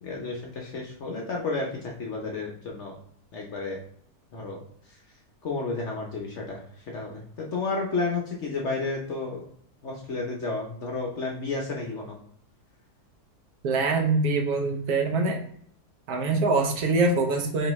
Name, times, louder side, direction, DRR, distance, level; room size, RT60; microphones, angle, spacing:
voice 1, 0.0-2.9 3.3-3.8 4.3-5.0 5.4-9.4 9.8-12.2, left 3 dB, 60° left, -1 dB, 0.8 m, -32 dB
voice 2, 13.6-15.4 16.1-17.7, right 3 dB, 70° right, 3 dB, 1.1 m, -24 dB
4.6 x 3.1 x 3.0 m, 0.64 s
omnidirectional pair, 1.8 m